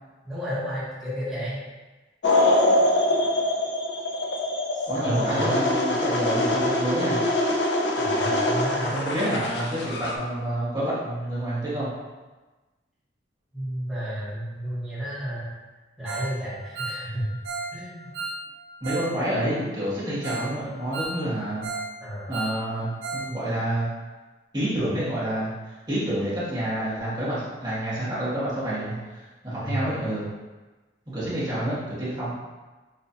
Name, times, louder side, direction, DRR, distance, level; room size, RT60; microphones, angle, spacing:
voice 1, 0.2-1.6 4.7-5.5 8.0-8.9 13.5-15.6 16.0-17.2 17.7-18.1 22.0-22.3 29.6-29.8, equal, ahead, -11 dB, 1.2 m, -32 dB
sound 1, 2.2-10.2, left 1 dB, 60° left, 0.5 m, -24 dB
voice 2, 4.9-7.2 8.9-11.9 18.8-21.6 22.3-23.9 24.5-30.3 31.1-32.3, right 1 dB, 25° right, -10 dB, 1.4 m, -28 dB
Ringtone, 16.0-16.3 16.6-19.1 19.4-19.5 19.9-20.0 20.2-20.5 20.8-21.9 22.2-23.3 23.6-23.7 24.1-24.2, right 3 dB, 75° right, 0.8 m, -34 dB
6.0 x 2.4 x 2.8 m, 1.2 s
head